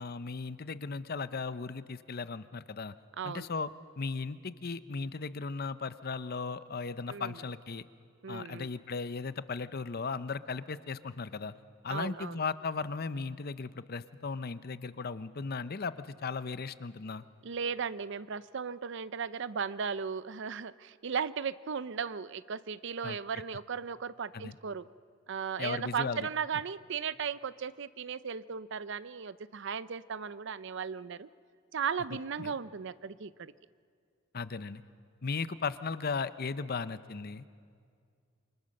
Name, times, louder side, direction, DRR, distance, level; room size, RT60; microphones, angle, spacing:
voice 1, 0.0-2.9 3.2-3.7 4.0-7.8 8.3-11.5 11.8-17.2 23.0-23.2 24.3-24.5 25.6-26.3 32.4-32.5 34.3-34.8 35.2-37.4, left 4 dB, 50° left, 14 dB, 0.7 m, -36 dB
voice 2, 3.2-3.5 7.1-7.4 8.2-8.7 11.9-12.4 17.4-24.9 25.3-31.3 31.7-33.5, right 6 dB, 65° right, 16 dB, 0.6 m, -36 dB
28.0 x 24.5 x 6.5 m, 2.1 s
head